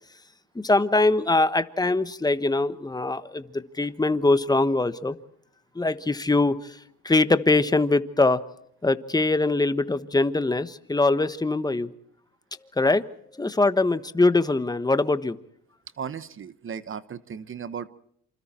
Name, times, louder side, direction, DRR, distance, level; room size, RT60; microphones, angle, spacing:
voice 1, 0.5-5.2 5.7-8.4 8.8-11.9 12.8-13.1 13.3-15.4, left 2 dB, 15° left, 12 dB, 1.3 m, -22 dB
voice 2, 16.0-17.9, right 7 dB, 45° right, 15 dB, 1.1 m, -36 dB
27.5 x 26.0 x 4.4 m, 0.69 s
cardioid pair, 90°, 30 cm